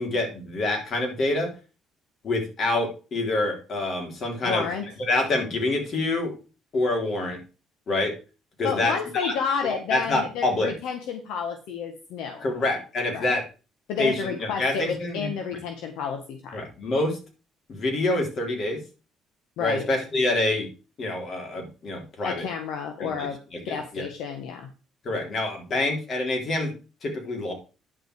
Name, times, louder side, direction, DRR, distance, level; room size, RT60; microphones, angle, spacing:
voice 1, 0.0-1.5 2.2-4.7 5.0-6.3 6.7-7.4 7.9-8.1 8.6-9.3 9.6-10.7 12.4-13.4 14.0-15.3 16.5-17.2 17.7-18.8 19.6-20.7 21.0-22.5 23.0-24.1 25.0-26.7 27.0-27.5, left 2 dB, 50° left, 2 dB, 3.6 m, -26 dB
voice 2, 4.4-4.8 8.6-12.4 13.1-13.4 13.9-16.6 19.6-19.9 22.2-23.4 23.6-24.7, left 6 dB, 80° left, 5 dB, 1.3 m, -30 dB
10.0 x 5.8 x 4.6 m, 0.33 s
supercardioid pair, 90°, 0 cm